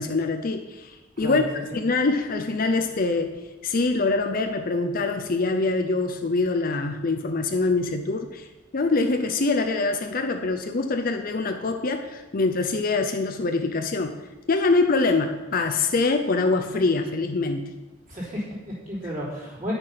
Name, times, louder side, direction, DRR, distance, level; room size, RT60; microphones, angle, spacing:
voice 1, 0.0-1.4 1.7-3.4 3.6-8.5 8.7-14.2 14.5-17.7, left 3 dB, 45° left, 5 dB, 0.6 m, -24 dB
voice 2, 18.1-19.7, equal, 40° right, -7 dB, 3.6 m, -33 dB
9.5 x 6.6 x 5.7 m, 1.2 s
head